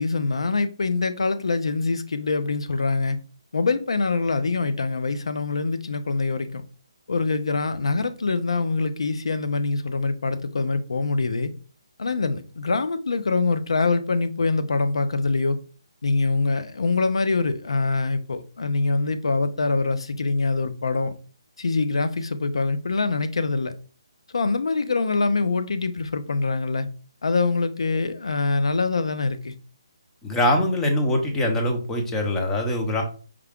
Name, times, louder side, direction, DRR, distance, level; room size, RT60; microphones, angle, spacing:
voice 1, 0.0-3.2 3.5-6.6 7.1-11.5 12.0-15.6 16.0-21.1 21.6-23.7 24.3-26.9 27.2-29.5, left 3 dB, 75° left, 0.5 m, -24 dB
voice 2, 30.2-33.0, left 1 dB, 10° left, 0.7 m, -23 dB
4.7 x 2.3 x 3.5 m
figure-of-eight pair, 150°, 3 cm